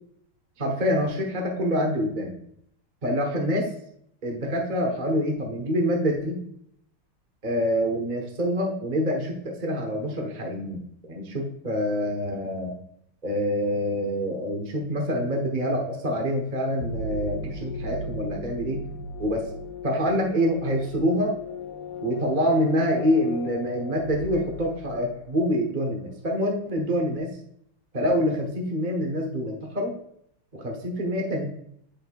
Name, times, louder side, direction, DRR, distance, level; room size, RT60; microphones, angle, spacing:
voice 1, 0.6-2.4 3.0-3.7 4.2-6.4 7.4-12.8 13.2-18.8 19.2-19.5 19.8-21.3 22.0-27.3 27.9-29.9 30.5-31.4, equal, 30° right, 1 dB, 1.0 m, -26 dB
sound 1, 16.8-25.4, left 1 dB, 90° left, 1.9 m, -37 dB
8.4 x 6.8 x 2.4 m, 0.70 s
omnidirectional pair, 2.4 m